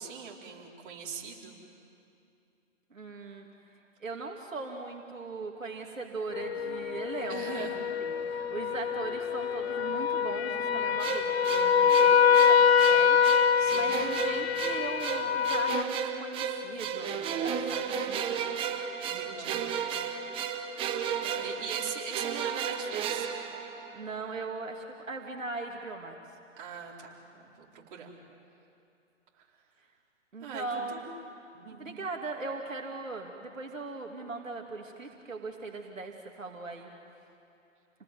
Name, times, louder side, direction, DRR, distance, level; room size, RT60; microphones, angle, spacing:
voice 1, 0.0-1.6 7.3-7.8 13.6-14.0 17.9-18.3 19.0-19.6 21.2-23.3 26.6-28.1 30.4-31.1 31.5-31.9, right 7 dB, 40° right, -2 dB, 4.6 m, -42 dB
voice 2, 2.9-3.5 4.0-7.7 8.0-13.2 13.5-18.0 19.1-20.1 23.9-26.2 28.0-28.2 30.3-31.1 31.7-36.9, right 3 dB, 80° right, 1 dB, 2.9 m, -39 dB
sound 1, 6.3-15.8, left 7 dB, 55° left, 0.9 m, -25 dB
sound 2, 6.5-12.6, left 2 dB, 20° left, 7.7 m, -50 dB
sound 3, 11.0-24.3, right 7 dB, 15° right, 1.1 m, -34 dB
29.0 x 19.5 x 9.5 m, 2.6 s
figure-of-eight pair, 135°, 38 cm